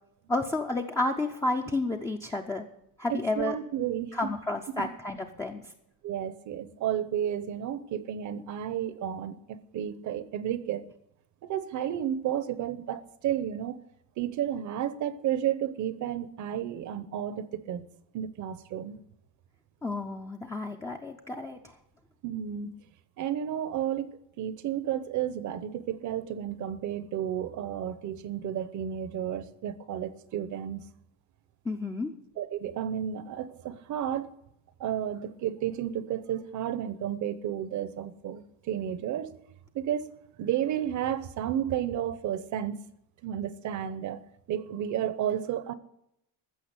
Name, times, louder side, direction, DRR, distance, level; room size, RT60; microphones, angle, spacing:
voice 1, 0.3-2.7 3.0-3.6 4.1-5.7 19.8-21.8 31.6-32.1, left 2 dB, 5° left, 1 dB, 0.5 m, -31 dB
voice 2, 3.1-4.2 4.8-4.9 6.0-10.8 11.4-13.8 14.2-17.9 18.1-19.0 22.2-22.7 23.2-30.8 32.4-34.3 34.8-39.4 39.7-40.1 40.4-42.8 43.2-44.2 44.5-45.7, right 10 dB, 45° right, 15 dB, 0.8 m, -32 dB
15.0 x 6.7 x 8.1 m, 0.79 s
cardioid pair, 170°, 43 cm